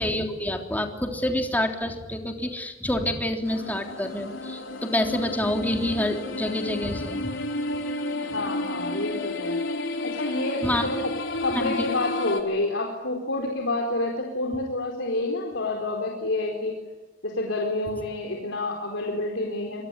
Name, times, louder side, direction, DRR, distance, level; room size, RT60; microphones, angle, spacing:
voice 1, 0.0-7.3 10.6-10.9 11.5-11.9, left 1 dB, 10° left, 4 dB, 3.5 m, -27 dB
sound 1, 3.4-12.4, left 2 dB, 90° left, 4.2 m, -31 dB
voice 2, 8.2-9.6 10.1-11.1 11.4-16.7 17.2-19.8, left 2 dB, 75° left, 0 dB, 4.4 m, -28 dB
26.0 x 23.0 x 9.9 m, 1.2 s
head